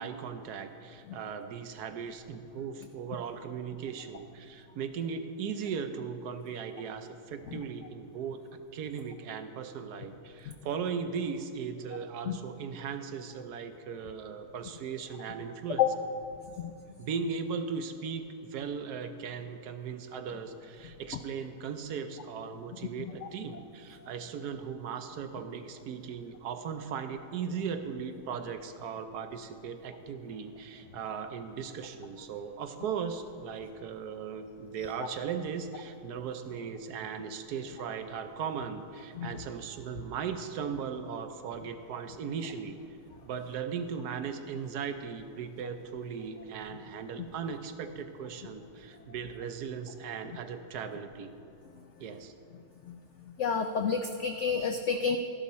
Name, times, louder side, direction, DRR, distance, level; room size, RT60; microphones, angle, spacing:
voice 1, 0.0-8.4 8.7-15.9 17.0-42.8 43.2-51.3 52.0-52.3, right 6 dB, 70° right, 8 dB, 1.2 m, -38 dB
voice 2, 23.0-23.6 39.2-39.3 52.9-53.0 53.4-55.2, left 7 dB, 80° left, 6 dB, 0.6 m, -30 dB
13.0 x 11.5 x 4.2 m, 2.5 s
omnidirectional pair, 1.8 m